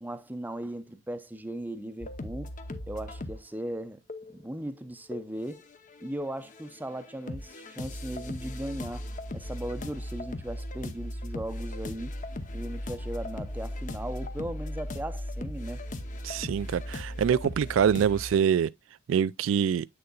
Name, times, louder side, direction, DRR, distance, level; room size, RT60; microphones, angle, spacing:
voice 1, 0.0-2.5 2.9-4.0 4.3-5.6 6.0-12.1 12.5-15.8, right 1 dB, 10° right, 0.6 m, -37 dB
sound 1, 2.0-3.4 4.1-4.4 5.1-6.1 6.4-18.4, left 1 dB, 40° left, 0.8 m, -38 dB
voice 2, 16.2-18.7 19.1-19.9, right 8 dB, 85° right, 0.3 m, -25 dB
8.0 x 6.6 x 2.3 m
head